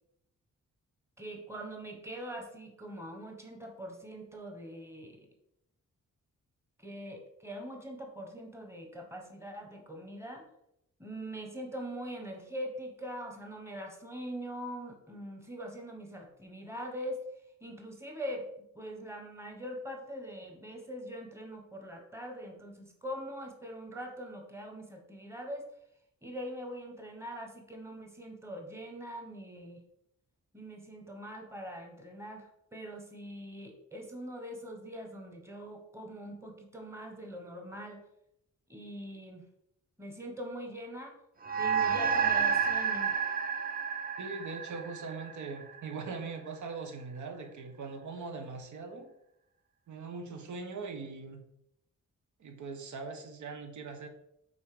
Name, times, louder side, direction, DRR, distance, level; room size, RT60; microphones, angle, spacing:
voice 1, 1.2-5.3 6.8-10.4 11.0-17.2 17.6-25.7 26.2-29.8 30.5-38.0 38.7-39.4 40.0-41.2 41.6-43.1, equal, 10° right, 2 dB, 1.2 m, -42 dB
sound 1, 41.4-46.1, right 7 dB, 30° right, 0.8 m, -30 dB
voice 2, 44.2-49.1 49.9-51.4 52.4-54.1, right 4 dB, 75° right, 5 dB, 1.1 m, -41 dB
5.4 x 4.1 x 5.0 m, 0.78 s
wide cardioid pair, 140°, 30 cm